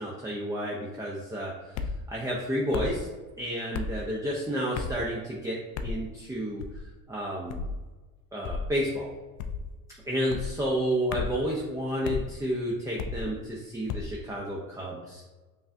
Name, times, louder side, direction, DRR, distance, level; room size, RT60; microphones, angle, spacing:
voice 1, 0.0-3.1 3.4-6.6 7.1-7.6 8.3-9.1 10.1-15.2, equal, 10° right, -3 dB, 0.5 m, -31 dB
sound 1, 1.7-2.0 2.7-3.0 3.7-4.0 4.7-5.0 5.7-6.0 6.6-6.9 7.5-7.8 8.4-8.7 9.4-9.7 10.3-10.5 11.1-11.4 12.0-12.3 13.0-13.3 13.9-14.1, left 5 dB, 45° left, 0.4 m, -33 dB
5.3 x 2.3 x 2.6 m, 1.2 s
hypercardioid pair, 75°, 43 cm